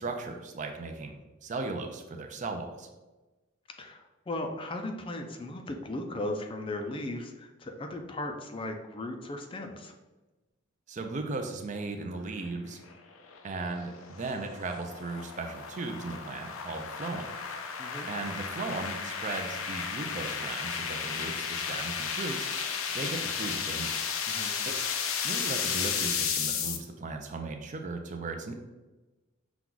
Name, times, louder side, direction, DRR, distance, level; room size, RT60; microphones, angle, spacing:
voice 1, 0.0-2.9 10.9-12.8 13.4-17.3 18.1-23.9 24.7-24.8 25.2-28.5, right 3 dB, 40° right, 5 dB, 0.5 m, -37 dB
voice 2, 3.8-9.9 17.8-18.1 24.3-24.5, left 1 dB, 25° left, 4 dB, 0.4 m, -37 dB
sound 1, 12.8-26.8, left 6 dB, 90° left, 0.5 m, -34 dB
5.9 x 2.3 x 3.8 m, 1.1 s
head